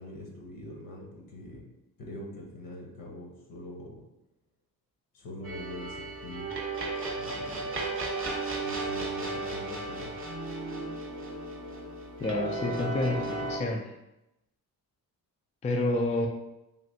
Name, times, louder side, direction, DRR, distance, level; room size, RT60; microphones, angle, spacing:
voice 1, 0.0-1.7 2.0-4.0 5.1-6.5 7.2-7.8 8.6-10.2, left 1 dB, 70° left, -1 dB, 1.0 m, -44 dB
sound 1, 5.4-13.6, right 2 dB, 35° right, 0.8 m, -34 dB
voice 2, 12.2-13.9 15.6-16.3, left 2 dB, 20° left, 2 dB, 0.3 m, -29 dB
3.3 x 2.7 x 2.7 m, 0.90 s
cardioid pair, 105°, 36 cm